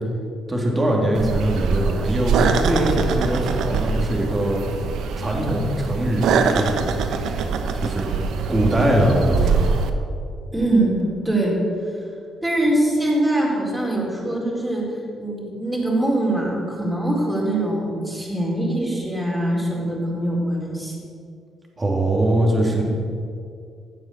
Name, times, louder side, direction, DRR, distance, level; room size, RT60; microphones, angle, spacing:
voice 1, 0.5-4.6 5.2-6.2 6.5-6.8 7.7-8.1 8.4-9.8 21.8-22.8, right 1 dB, 20° right, -1 dB, 3.3 m, -21 dB
sound 1, 1.1-9.9, right 5 dB, 80° right, 1.1 m, -23 dB
voice 2, 10.5-11.6 12.4-21.0, right 1 dB, 5° right, -4 dB, 4.4 m, -23 dB
16.5 x 7.8 x 7.8 m, 2.4 s
cardioid pair, 90°, 0 cm